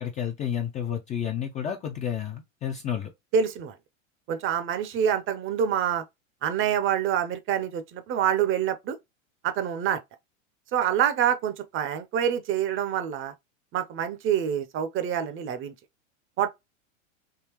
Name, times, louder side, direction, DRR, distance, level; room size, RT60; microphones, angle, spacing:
voice 1, 0.0-3.1, left 9 dB, 20° left, 0.3 m, -31 dB
voice 2, 3.3-3.7 4.3-6.0 6.4-9.0 9.4-10.0 10.7-13.3 13.7-15.7 16.4-16.5, right 9 dB, 30° right, 0.6 m, -26 dB
3.7 x 2.7 x 2.9 m
hypercardioid pair, 110°, 40 cm